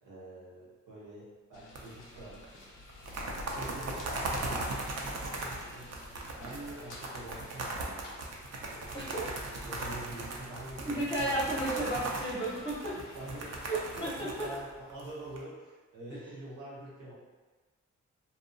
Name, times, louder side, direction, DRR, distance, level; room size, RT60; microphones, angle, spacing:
voice 1, 0.0-2.5 3.2-6.0 6.4-8.1 8.7-9.2 9.6-11.4 12.8-17.1, right 1 dB, 90° right, -7 dB, 0.9 m, -46 dB
sound 1, 1.5-14.0, left 2 dB, 85° left, 0.5 m, -52 dB
sound 2, 1.8-2.4 2.9-15.4, right 2 dB, 55° right, 0.5 m, -38 dB
voice 2, 10.8-12.9 13.7-14.5 16.1-16.3, right 1 dB, 15° left, -5 dB, 0.7 m, -33 dB
2.5 x 2.1 x 2.5 m, 1.3 s
cardioid pair, 60°, 31 cm